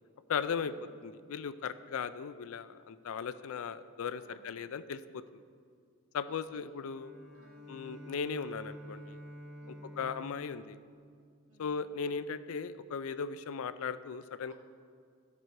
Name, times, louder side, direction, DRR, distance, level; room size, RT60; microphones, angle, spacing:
voice 1, 0.3-0.7 1.0-5.2 6.1-7.1 7.7-9.2 10.0-10.8 11.6-14.5, left 6 dB, 65° left, 13 dB, 0.4 m, -37 dB
voice 2, 6.2-6.6 7.3-7.7 9.5-9.9 11.5-11.7, right 2 dB, 70° right, -2 dB, 1.7 m, -63 dB
Bowed string instrument, 6.9-11.9, equal, ahead, 1.7 m, -50 dB
13.5 x 6.2 x 4.5 m, 2.2 s
head